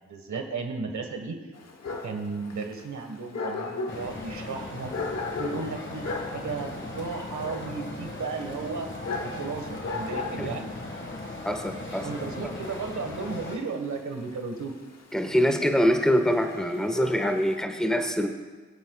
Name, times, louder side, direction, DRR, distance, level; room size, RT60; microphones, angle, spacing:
voice 1, 0.0-1.4 2.0-4.9 5.4-8.9 9.2-10.9 12.0-14.7, right 4 dB, 75° right, 4 dB, 1.5 m, -34 dB
Dog, 1.5-17.6, left 3 dB, 60° left, 1.2 m, -38 dB
sound 1, 3.9-13.6, left 2 dB, 40° left, 1.8 m, -38 dB
voice 2, 11.4-12.1 15.1-18.3, equal, ahead, 5 dB, 1.4 m, -24 dB
21.5 x 8.0 x 2.4 m, 1.4 s
cardioid pair, 45°, 29 cm